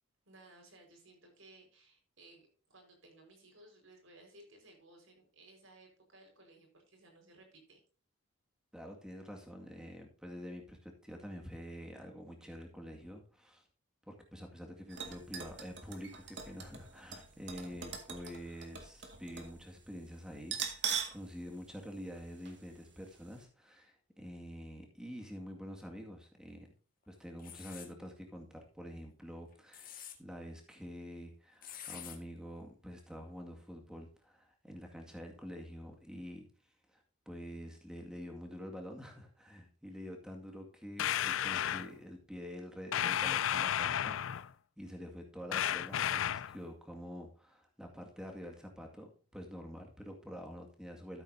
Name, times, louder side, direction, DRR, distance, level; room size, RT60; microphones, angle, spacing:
voice 1, 0.2-7.8, right 2 dB, 75° right, 2 dB, 4.8 m, -59 dB
voice 2, 8.7-13.6 14.1-26.7 27.1-36.4 36.9-37.0 37.3-44.5 44.8-51.2, equal, 5° right, 2 dB, 2.0 m, -47 dB
sound 1, 14.9-19.6 19.8-19.9 20.4-21.2 21.6-21.7 22.5-22.6 23.0-23.1, right 7 dB, 55° right, 2.0 m, -41 dB
sound 2, 27.4-27.9 29.5-30.2 31.6-32.2, left 10 dB, 40° left, 1.7 m, -47 dB
sound 3, 41.0-41.9 42.9-44.5 45.5-46.6, left 10 dB, 70° left, 0.4 m, -33 dB
13.5 x 8.3 x 2.7 m, 0.40 s
head